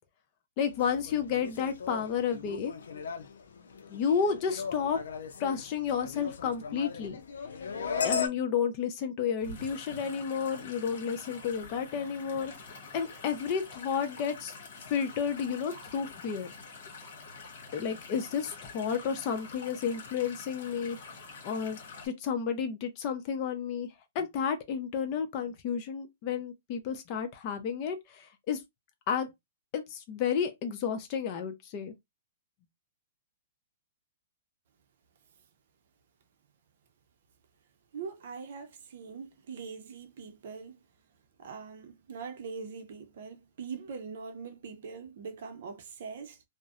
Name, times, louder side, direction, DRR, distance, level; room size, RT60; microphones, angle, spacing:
voice 1, 0.6-2.7 3.9-5.0 5.4-7.2 8.0-12.5 12.9-14.5 14.9-16.5 17.7-21.0 21.4-21.8 22.0-23.9 24.1-28.0 28.5-28.6 29.1-29.3 29.7-31.9, left 7 dB, 40° left, 0.7 m, -31 dB
sound 1, 0.7-8.3, left 6 dB, 85° left, 0.5 m, -37 dB
sound 2, 9.4-22.1, left 4 dB, 65° left, 1.2 m, -47 dB
voice 2, 37.9-40.8 41.4-46.4, right 5 dB, 65° right, 0.7 m, -42 dB
2.5 x 2.1 x 2.4 m
hypercardioid pair, 145°, 0 cm